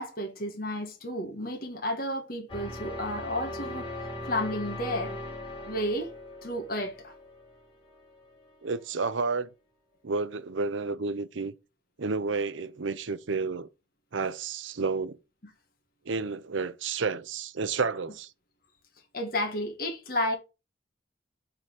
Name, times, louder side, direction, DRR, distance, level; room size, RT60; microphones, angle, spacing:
voice 1, 0.0-3.9 4.3-5.2 5.6-6.1 6.4-7.1 19.1-20.4, left 1 dB, 50° left, 1.6 m, -32 dB
sound 1, 2.5-8.5, left 1 dB, 25° left, 2.7 m, -39 dB
voice 2, 8.6-9.5 10.0-11.5 12.0-13.7 14.1-15.2 16.1-18.3, right 4 dB, 80° right, 0.7 m, -31 dB
7.8 x 3.9 x 5.8 m
head